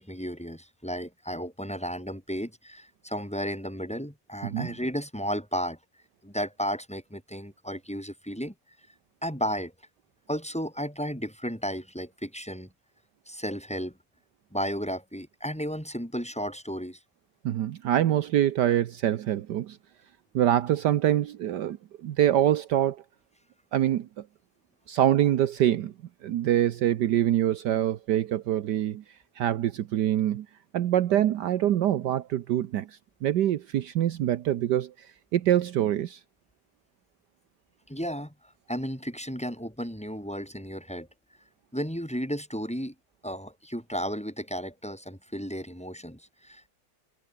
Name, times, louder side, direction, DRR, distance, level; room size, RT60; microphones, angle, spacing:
voice 1, 0.0-5.8 6.2-8.5 9.2-9.7 10.3-12.7 13.3-13.9 14.5-17.0 37.9-38.3 38.7-41.1 41.7-42.9 43.2-46.7, equal, 5° left, 5.4 m, -33 dB
voice 2, 17.4-19.8 20.3-21.8 22.0-23.0 23.7-24.1 24.9-25.9 26.2-29.0 29.4-30.5 30.7-32.9 33.2-34.9 35.3-36.2, right 11 dB, 70° right, 1.4 m, -24 dB
omnidirectional pair, 2.0 m